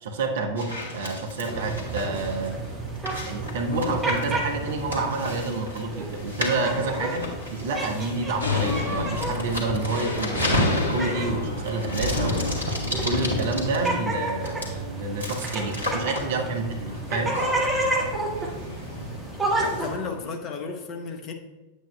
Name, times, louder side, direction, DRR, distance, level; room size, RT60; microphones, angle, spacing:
voice 1, 0.0-2.6 3.2-17.4, right 3 dB, 60° right, 3 dB, 1.0 m, -29 dB
sound 1, 0.6-20.3, left 1 dB, 85° right, 1.6 m, -33 dB
sound 2, 1.5-20.0, right 2 dB, 10° right, 1.4 m, -32 dB
sound 3, 8.4-19.2, left 3 dB, 70° left, 1.1 m, -32 dB
voice 2, 19.6-21.3, left 4 dB, 35° left, 3 dB, 0.9 m, -34 dB
9.0 x 8.2 x 2.2 m, 1.1 s
figure-of-eight pair, 90°, 0 cm